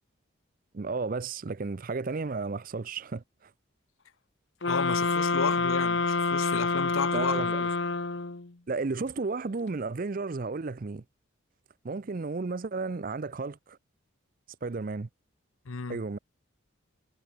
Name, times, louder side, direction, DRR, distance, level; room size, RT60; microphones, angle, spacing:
voice 1, 0.7-3.5 7.1-7.7 8.7-11.0 11.8-13.8 14.6-15.1 15.9-16.2, right 4 dB, 40° right, 0.5 m, -33 dB
sound 1, 4.6-8.5, left 4 dB, 60° left, 1.1 m, -27 dB
voice 2, 4.7-7.6 15.7-16.0, left 5 dB, 85° left, 0.8 m, -33 dB
head